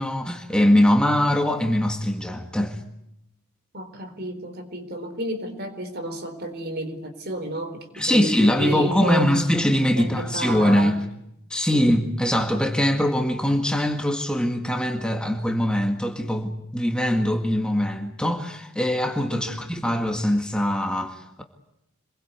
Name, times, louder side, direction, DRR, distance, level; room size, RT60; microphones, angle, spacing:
voice 1, 0.0-2.8 8.0-11.1 11.5-21.4, left 1 dB, 5° left, 1.8 m, -22 dB
voice 2, 3.7-9.3 10.0-11.0 11.7-11.9 19.3-19.6, right 1 dB, 50° right, 4.0 m, -31 dB
26.5 x 22.0 x 8.3 m
head